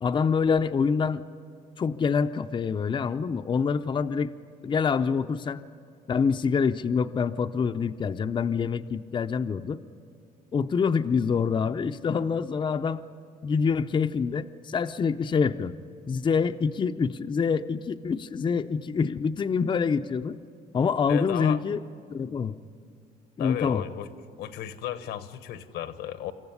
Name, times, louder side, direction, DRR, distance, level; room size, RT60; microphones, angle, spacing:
voice 1, 0.0-1.2 1.8-4.3 4.6-5.6 6.1-9.8 10.5-13.0 13.4-15.7 16.1-20.4 20.7-21.8 22.1-22.6 23.4-23.8, left 5 dB, 30° left, 8 dB, 0.6 m, -26 dB
voice 2, 21.1-21.6 23.4-24.1 24.4-26.3, left 11 dB, 85° left, 11 dB, 1.1 m, -34 dB
25.5 x 14.5 x 9.7 m, 2.4 s
cardioid pair, 110°, 17 cm